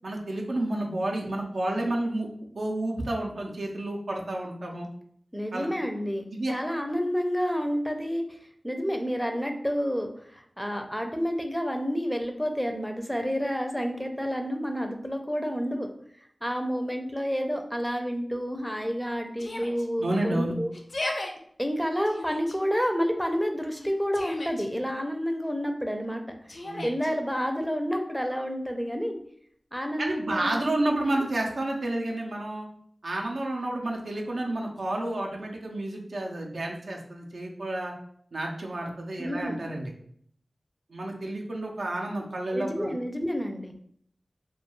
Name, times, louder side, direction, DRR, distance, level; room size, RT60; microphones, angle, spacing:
voice 1, 0.0-2.3 2.5-4.9 5.5-5.7 6.3-6.5 20.0-20.5 26.6-26.8 30.0-32.7 33.0-37.9 38.3-39.9 40.9-42.9, right 1 dB, 85° right, 0 dB, 0.4 m, -30 dB
voice 2, 5.3-8.4 8.6-15.9 16.4-20.7 21.6-26.4 26.8-29.2 29.7-31.1 39.2-39.6 42.5-43.7, equal, ahead, 4 dB, 0.4 m, -29 dB
Yell, 19.4-19.9 20.7-21.3 22.0-22.6 23.7-24.7 26.5-27.1, left 2 dB, 65° left, 0.4 m, -35 dB
2.2 x 2.2 x 2.9 m, 0.64 s
cardioid pair, 45°, 0 cm